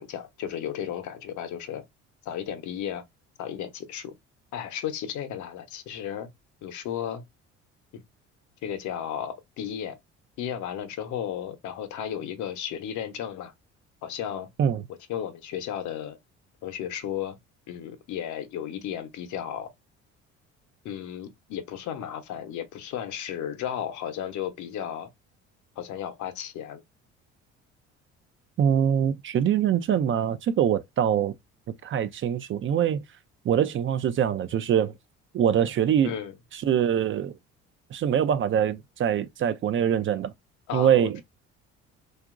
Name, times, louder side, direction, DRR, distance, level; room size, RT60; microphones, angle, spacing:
voice 1, 0.0-1.8 2.2-3.0 3.4-4.1 4.5-6.3 6.6-7.2 7.9-8.0 8.6-10.0 10.4-13.5 14.0-14.5 15.1-16.2 16.6-17.4 17.7-19.7 20.8-25.1 25.8-26.8 36.0-36.3 40.7-41.1, left 9 dB, 65° left, 0.8 m, -34 dB
voice 2, 28.6-31.3 31.8-33.0 33.4-34.9 35.3-36.1 36.5-37.3 37.9-40.3 40.7-41.2, right 9 dB, 40° right, 0.4 m, -24 dB
2.8 x 2.4 x 2.4 m
supercardioid pair, 70°, 32 cm